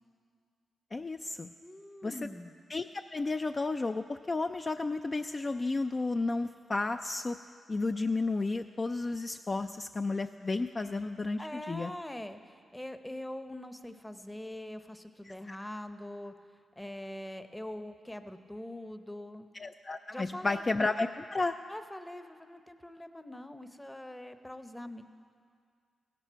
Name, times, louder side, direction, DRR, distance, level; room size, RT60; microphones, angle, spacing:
voice 1, 0.9-1.5 2.0-2.1 2.7-2.8 3.1-7.4 7.7-11.4 11.7-11.9 15.5-15.6 19.6-21.5, left 3 dB, 35° left, 7 dB, 0.3 m, -32 dB
voice 2, 1.6-2.5 11.4-16.3 16.8-19.5 20.1-20.7 21.7-25.0, left 1 dB, 10° left, 9 dB, 0.7 m, -43 dB
16.0 x 12.0 x 4.6 m, 2.1 s
cardioid pair, 70°, 0 cm